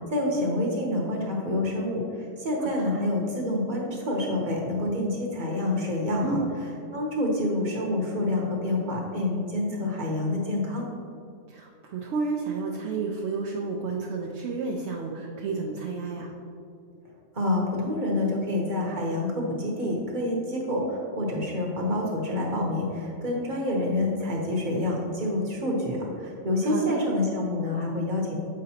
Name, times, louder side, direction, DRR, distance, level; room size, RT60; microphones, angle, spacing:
voice 1, 0.1-6.4 6.9-10.9 17.3-28.4, left 1 dB, 40° right, -2 dB, 1.0 m, -27 dB
voice 2, 6.2-6.5 11.5-16.3 26.6-27.0, right 4 dB, 65° right, -1 dB, 0.8 m, -31 dB
7.5 x 5.0 x 2.8 m, 2.5 s
omnidirectional pair, 1.4 m